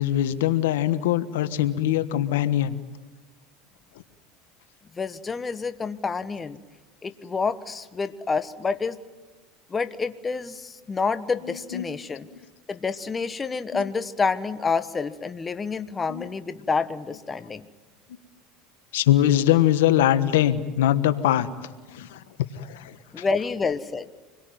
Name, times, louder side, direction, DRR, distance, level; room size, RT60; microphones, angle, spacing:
voice 1, 0.0-2.8 11.5-11.9 13.7-13.8 16.1-16.3 18.9-21.5 21.9-22.2 22.5-23.2, left 12 dB, 85° left, 12 dB, 1.3 m, -22 dB
voice 2, 4.9-6.6 7.0-9.0 9.7-12.3 12.7-17.7 23.1-24.1, left 4 dB, 20° left, 11 dB, 1.3 m, -28 dB
27.0 x 22.0 x 9.3 m, 1.2 s
supercardioid pair, 100°, 0 cm